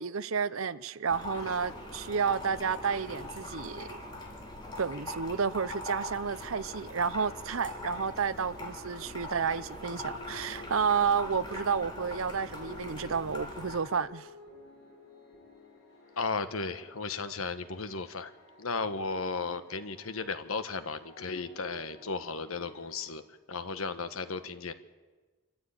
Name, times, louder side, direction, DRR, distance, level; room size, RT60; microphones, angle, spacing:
voice 1, 0.0-4.0 4.8-14.3, right 6 dB, 70° right, 0.7 m, -31 dB
sound 1, 1.1-13.8, left 1 dB, 20° left, 3.3 m, -42 dB
sound 2, 9.3-23.1, left 1 dB, 55° left, 7.6 m, -53 dB
voice 2, 16.2-18.3 18.6-24.7, left 4 dB, 75° left, 1.3 m, -35 dB
26.0 x 14.0 x 8.8 m
head